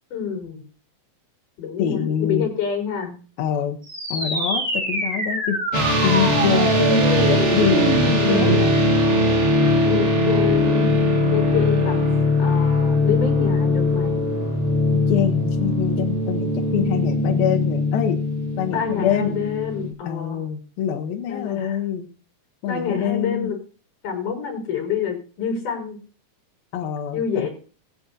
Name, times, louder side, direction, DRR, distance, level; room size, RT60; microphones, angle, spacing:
voice 1, 0.1-0.6 1.6-3.2 8.1-8.6 9.9-11.0 11.3-12.1 12.4-14.2 18.7-20.4 21.3-21.8 22.7-23.6 24.0-26.0 27.1-27.5, left 7 dB, 60° left, 1 dB, 5.3 m, -27 dB
voice 2, 1.8-2.5 3.4-3.8 4.1-5.6 6.0-8.8 15.1-18.2 18.6-19.4 20.1-22.1 22.6-23.5 26.7-27.5, left 8 dB, 85° left, 2 dB, 2.8 m, -25 dB
sound 1, 3.8-8.9, right 2 dB, 15° right, 4.3 m, -25 dB
sound 2, 5.7-19.9, left 1 dB, 65° right, 0.6 m, -20 dB
20.5 x 8.4 x 2.7 m, 0.37 s
omnidirectional pair, 4.1 m